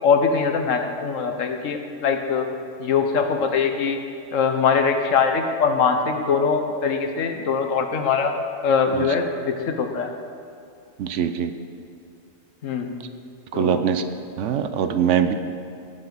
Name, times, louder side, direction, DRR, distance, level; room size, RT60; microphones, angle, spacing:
voice 1, 0.0-2.5 2.8-4.0 4.3-8.3 8.6-10.1 12.6-12.9 13.5-13.8, left 5 dB, 75° left, 5 dB, 1.3 m, -22 dB
voice 2, 11.0-11.5 13.5-14.0 14.4-15.3, right 8 dB, 70° right, 9 dB, 0.9 m, -22 dB
17.0 x 7.5 x 4.0 m, 2.5 s
omnidirectional pair, 1.4 m